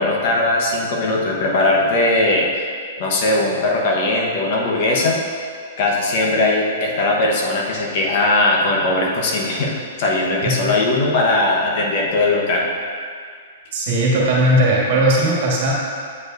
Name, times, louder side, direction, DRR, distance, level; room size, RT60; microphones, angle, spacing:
voice 1, 0.0-2.5 3.0-5.2 5.8-12.6, left 2 dB, 50° left, -2 dB, 1.0 m, -19 dB
voice 2, 10.4-10.7 13.7-15.7, right 1 dB, 55° right, -4 dB, 1.6 m, -17 dB
8.2 x 4.9 x 2.6 m, 2.1 s
hypercardioid pair, 140°, 0 cm